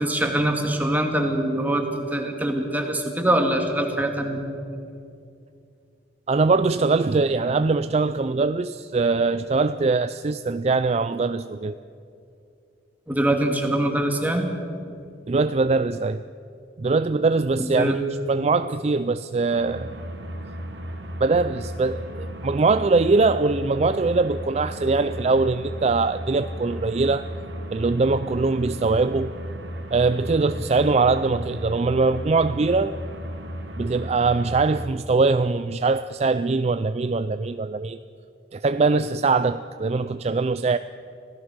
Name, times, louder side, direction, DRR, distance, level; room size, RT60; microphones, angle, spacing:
voice 1, 0.0-1.9 2.1-4.4 13.1-14.5 17.6-18.0, right 1 dB, 10° right, 3 dB, 2.1 m, -23 dB
voice 2, 6.3-11.8 15.3-16.2 16.8-18.0 18.3-20.0 21.2-27.2 27.7-29.3 29.9-33.0 33.8-38.0 38.5-40.8, right 3 dB, 35° right, 12 dB, 0.4 m, -22 dB
sound 1, 19.5-34.9, equal, 70° right, 2.6 m, -35 dB
25.5 x 16.5 x 6.4 m, 2.5 s
head